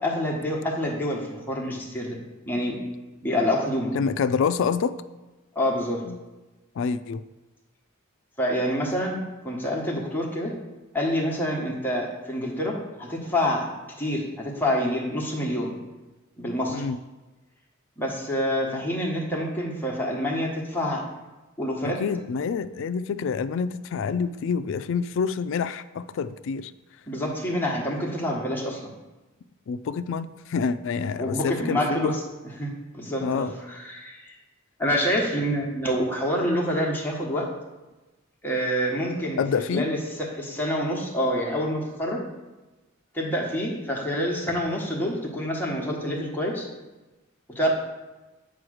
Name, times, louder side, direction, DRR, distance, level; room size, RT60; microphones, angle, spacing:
voice 1, 0.0-2.2 2.5-2.8 3.2-3.9 5.5-6.0 8.4-10.5 10.9-13.7 14.0-15.7 16.4-16.8 18.0-21.0 21.6-22.0 27.1-28.9 31.2-32.2 32.6-34.2 34.8-37.5 38.4-39.4 39.7-42.2 43.1-46.7 47.5-47.7, equal, 10° left, -2 dB, 1.2 m, -27 dB
voice 2, 3.9-5.0 6.0-6.2 6.8-7.2 16.7-17.0 21.8-26.7 29.7-32.1 33.2-33.5 39.4-39.9, left 6 dB, 65° left, 13 dB, 0.3 m, -27 dB
8.6 x 3.1 x 6.3 m, 1.1 s
head